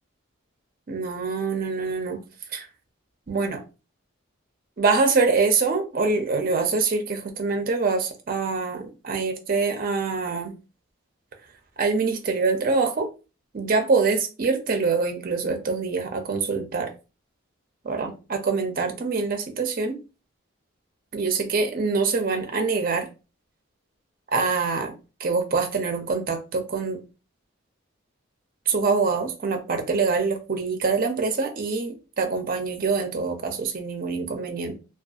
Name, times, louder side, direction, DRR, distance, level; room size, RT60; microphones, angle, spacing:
voice 1, 0.9-2.2 2.5-2.7 3.3-3.6 4.8-10.5 11.8-13.1 13.5-16.9 17.8-20.0 21.1-23.1 24.3-24.9 25.2-27.0 28.7-34.8, right 4 dB, 45° right, 0.4 m, -25 dB
2.6 x 2.3 x 2.3 m
head